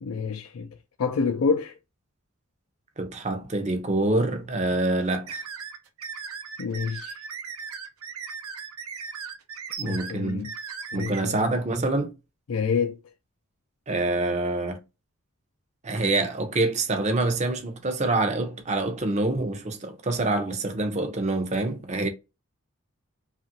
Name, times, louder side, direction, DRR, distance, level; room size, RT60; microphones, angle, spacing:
voice 1, 0.0-0.7 1.0-1.8 6.6-7.2 9.8-10.5 10.9-11.4 12.5-13.0, left 5 dB, 80° left, 0.4 m, -27 dB
voice 2, 3.0-5.4 9.8-10.5 10.9-12.1 13.9-14.8 15.8-22.1, right 2 dB, 30° right, 0.6 m, -26 dB
sound 1, 5.3-11.2, right 6 dB, 80° right, 0.6 m, -37 dB
2.9 x 2.4 x 2.7 m
head